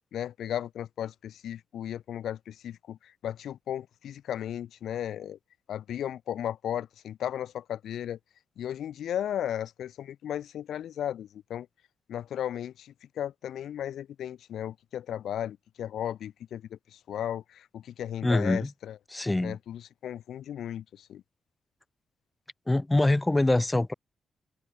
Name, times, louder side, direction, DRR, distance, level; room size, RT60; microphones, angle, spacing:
voice 1, 0.1-5.4 5.7-8.2 8.6-11.7 12.1-19.0 19.4-21.2, left 10 dB, 75° left, 4.1 m, -35 dB
voice 2, 18.2-18.7 19.1-19.6 22.7-23.9, left 2 dB, 10° left, 4.9 m, -24 dB
wide cardioid pair, 180°, 0 cm